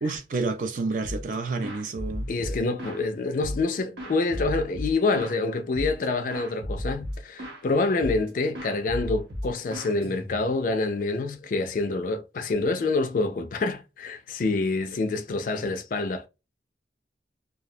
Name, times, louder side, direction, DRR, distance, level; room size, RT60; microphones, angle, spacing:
voice 1, 0.0-2.3, right 3 dB, 45° right, 0.4 m, -29 dB
sound 1, 1.0-1.3 1.6-3.0 3.4-5.4 5.7-6.1 6.3-7.6 8.0-8.3 8.5-10.6, equal, 75° right, 0.8 m, -34 dB
voice 2, 2.3-16.3, left 3 dB, 50° left, 0.3 m, -27 dB
2.3 x 2.0 x 2.6 m
head